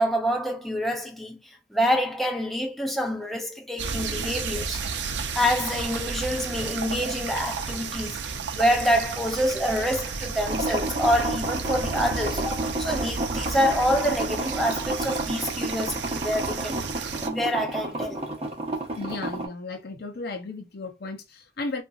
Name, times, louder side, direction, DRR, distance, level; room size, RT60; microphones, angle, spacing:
voice 1, 0.0-1.4 1.7-4.8 5.3-18.3, equal, ahead, 0.6 m, -27 dB
At a stream by a meadow early evening, 3.8-17.3, right 5 dB, 85° right, 0.5 m, -32 dB
sound 1, 10.5-19.5, right 1 dB, 35° right, 0.8 m, -31 dB
voice 2, 18.9-21.8, left 3 dB, 60° left, 0.6 m, -35 dB
2.8 x 2.5 x 2.4 m
head